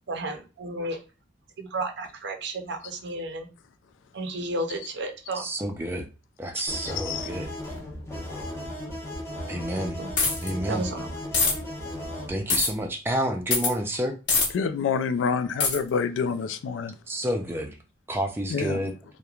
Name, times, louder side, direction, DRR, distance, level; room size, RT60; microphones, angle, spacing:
voice 1, 0.1-1.0 1.6-3.5 4.1-5.5 10.0-10.1 10.7-11.1, right 2 dB, 65° right, 0.5 m, -32 dB
voice 2, 5.3-6.1 6.4-7.5 9.5-10.0 10.4-10.9 12.3-14.2 17.1-17.8 18.1-18.9, right 1 dB, 10° right, 0.3 m, -29 dB
sound 1, 6.7-12.3, left 1 dB, 15° left, 0.7 m, -36 dB
voice 3, 7.0-7.3 14.5-16.9 18.5-18.9, left 6 dB, 85° left, 0.3 m, -27 dB
sound 2, 10.2-10.5 11.3-11.5 12.5-12.7 13.5-13.7 14.3-14.5 15.6-15.8, left 4 dB, 65° left, 1.0 m, -22 dB
3.0 x 2.1 x 2.3 m
head